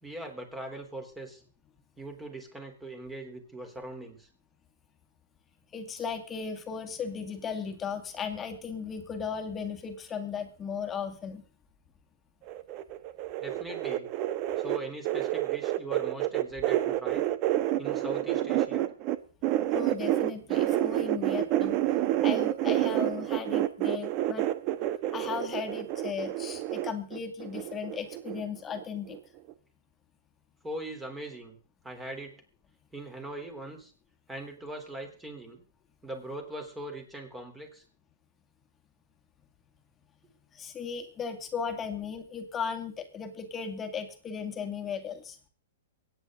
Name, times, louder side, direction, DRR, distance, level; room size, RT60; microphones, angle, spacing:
voice 1, 0.0-1.4 2.0-4.3 13.4-14.1 14.6-17.3 17.8-18.9 30.6-31.6 31.8-32.4 32.9-33.9 34.3-35.7 36.0-37.8, right 1 dB, 10° right, 5 dB, 3.5 m, -40 dB
voice 2, 5.7-11.4 19.7-21.8 22.2-24.5 25.1-29.2 40.5-45.4, left 6 dB, 20° left, 5 dB, 2.1 m, -36 dB
sound 1, 12.5-19.2 19.4-28.4 28.7-29.2 29.5-29.6, right 14 dB, 40° right, 1.1 m, -29 dB
23.5 x 9.5 x 3.8 m, 0.41 s
hypercardioid pair, 140°, 0 cm